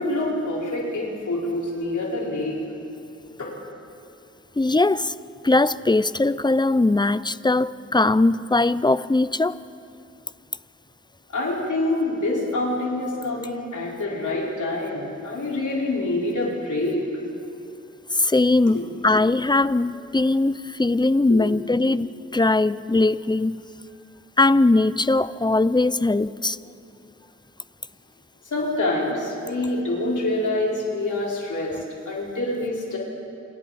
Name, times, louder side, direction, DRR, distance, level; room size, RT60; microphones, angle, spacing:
voice 1, 0.0-2.5 3.4-3.5 11.3-17.0 18.7-18.8 21.3-21.4 28.4-33.0, left 2 dB, 85° left, -4 dB, 4.9 m, -26 dB
voice 2, 4.6-5.1 5.4-9.6 18.1-23.6 24.4-26.6, left 2 dB, 15° left, 16 dB, 0.7 m, -20 dB
28.0 x 28.0 x 4.3 m, 2.8 s
cardioid pair, 40°, 29 cm